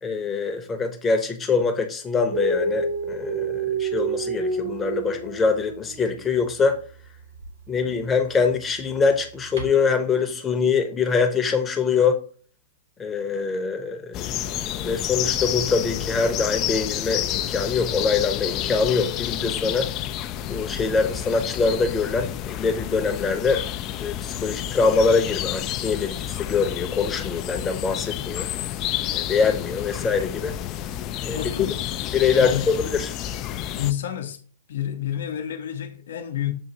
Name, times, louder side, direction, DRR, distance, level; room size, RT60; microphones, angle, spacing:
voice 1, 0.0-6.8 7.7-12.2 13.0-14.4 14.8-19.9 20.5-23.7 24.0-28.5 29.1-30.6 31.2-31.7 32.1-33.1, left 5 dB, 15° left, 0.7 m, -24 dB
Dog, 2.3-6.3 7.3-7.5 9.5-9.7, right 3 dB, 80° right, 1.8 m, -28 dB
sound 1, 14.1-33.9, left 12 dB, 35° left, 0.3 m, -30 dB
voice 2, 31.3-32.1 32.4-32.8 33.7-34.4 34.7-36.5, left 11 dB, 65° left, 0.7 m, -29 dB
7.0 x 2.5 x 2.8 m
hypercardioid pair, 120°, 0 cm